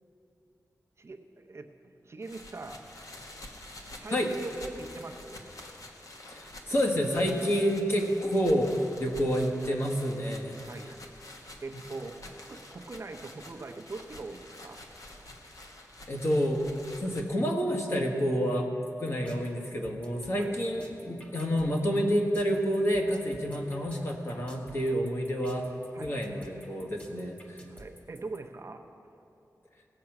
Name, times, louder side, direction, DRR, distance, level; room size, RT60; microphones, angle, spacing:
voice 1, 1.0-1.7 2.0-2.9 4.0-5.5 10.7-11.0 11.6-14.8 20.4-20.5 25.9-26.1 27.7-28.8, right 3 dB, 45° right, 4 dB, 0.7 m, -42 dB
sound 1, 2.2-17.2, left 1 dB, 65° left, 1.3 m, -48 dB
voice 2, 6.3-10.6 11.7-11.8 16.1-16.7 17.0-25.7 26.0-27.6, equal, 40° left, 2 dB, 1.4 m, -29 dB
sound 2, 18.9-28.4, equal, 20° left, 1.4 m, -52 dB
17.5 x 7.6 x 5.9 m, 2.8 s
wide cardioid pair, 110°, 6 cm